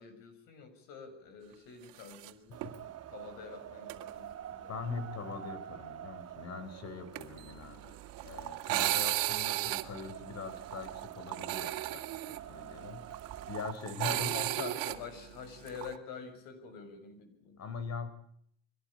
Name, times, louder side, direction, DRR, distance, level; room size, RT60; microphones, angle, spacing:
voice 1, 0.0-4.7 14.0-17.6, left 7 dB, 85° left, 9 dB, 7.0 m, -46 dB
sound 1, 2.0-2.3 2.6-2.7 3.9-4.1 7.2-16.0, right 19 dB, 85° right, 2.3 m, -35 dB
Wind, 2.5-13.7, right 11 dB, 50° right, 3.4 m, -47 dB
voice 2, 4.6-13.0 13.4-14.7 17.6-18.1, left 5 dB, 50° left, 13 dB, 4.4 m, -42 dB
24.5 x 18.5 x 8.8 m, 0.67 s
cardioid pair, 100°, 33 cm